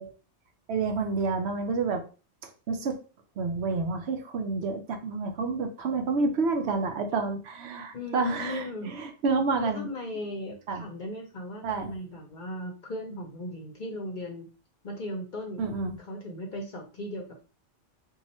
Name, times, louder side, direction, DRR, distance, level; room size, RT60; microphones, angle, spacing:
voice 1, 0.7-2.0 2.7-3.0 3.4-9.9 10.7-10.8 11.6-11.9 15.6-16.0, right 4 dB, 70° right, 5 dB, 0.8 m, -29 dB
voice 2, 7.9-9.0 9.6-14.5 14.8-15.7 16.0-17.4, left 1 dB, 50° left, 2 dB, 0.7 m, -37 dB
2.7 x 2.3 x 4.1 m, 0.35 s
omnidirectional pair, 1.2 m